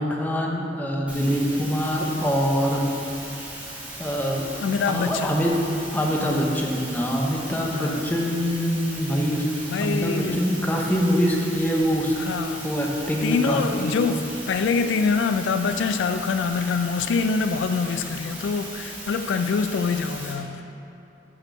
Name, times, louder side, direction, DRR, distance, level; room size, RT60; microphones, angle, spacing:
voice 1, 0.0-2.8 4.0-4.4 4.9-5.5 5.9-9.5 9.8-12.1 12.6-13.9, equal, 10° left, -1 dB, 0.7 m, -24 dB
sound 1, 1.1-20.3, right 1 dB, 10° right, 1.2 m, -38 dB
voice 2, 4.6-5.3 7.7-8.1 9.7-10.4 12.1-12.7 13.2-20.6, left 5 dB, 80° left, 8 dB, 0.3 m, -25 dB
6.4 x 4.3 x 6.1 m, 2.8 s
head